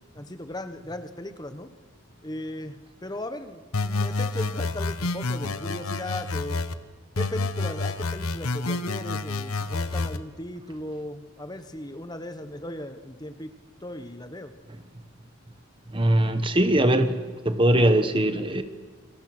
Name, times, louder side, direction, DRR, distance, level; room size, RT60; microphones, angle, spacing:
voice 1, 0.0-1.7 2.2-6.6 7.1-13.5 13.8-14.5, left 1 dB, 20° left, 9 dB, 1.2 m, -37 dB
sound 1, 3.7-6.7 7.2-10.2, left 3 dB, 85° left, 1.1 m, -29 dB
voice 2, 15.9-18.6, right 1 dB, 25° right, 9 dB, 1.2 m, -21 dB
29.0 x 24.5 x 6.2 m, 1.4 s
head